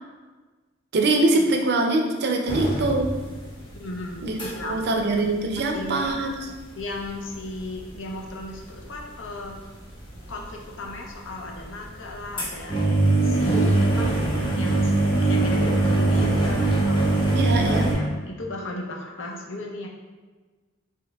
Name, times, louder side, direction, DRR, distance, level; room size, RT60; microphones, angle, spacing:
voice 1, 0.9-3.1 4.2-6.4 17.3-17.9, right 2 dB, 55° right, 3 dB, 0.5 m, -23 dB
sound 1, 2.5-3.4 3.7-4.8 5.1-5.2 5.5-6.0 6.5-8.1 8.4-9.2 9.8-10.5 10.9-17.9, right 2 dB, 25° left, 0.9 m, -22 dB
voice 2, 3.7-4.8 5.7-6.3 6.7-9.5 10.3-12.8 13.2-14.2 14.5-17.4 17.9-19.9, left 2 dB, 70° left, 0 dB, 0.6 m, -36 dB
4.5 x 3.0 x 2.2 m, 1.3 s
head